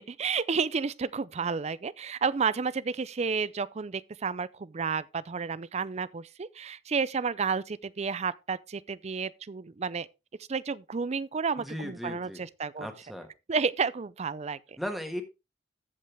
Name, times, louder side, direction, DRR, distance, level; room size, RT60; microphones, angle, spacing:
voice 1, 0.0-10.1 10.5-12.9 13.5-14.8, right 5 dB, 35° right, 0.5 m, -31 dB
voice 2, 11.6-12.4 12.8-13.3 14.8-15.2, equal, ahead, 1.6 m, -36 dB
14.5 x 5.4 x 3.4 m
head